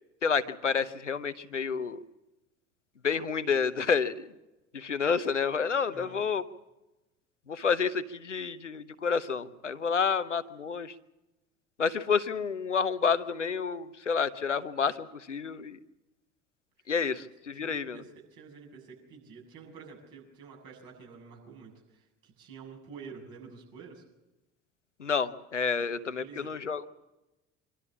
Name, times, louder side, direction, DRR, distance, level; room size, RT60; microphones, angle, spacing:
voice 1, 0.2-2.0 3.0-4.3 4.7-6.4 7.5-10.9 11.8-15.8 16.9-18.0 25.0-26.9, left 6 dB, 90° left, 14 dB, 0.9 m, -29 dB
voice 2, 5.9-6.2 17.1-17.2 17.5-24.0 25.8-26.5, right 5 dB, 65° right, 0 dB, 7.6 m, -49 dB
25.5 x 13.0 x 8.6 m, 0.98 s
figure-of-eight pair, 55°, 35 cm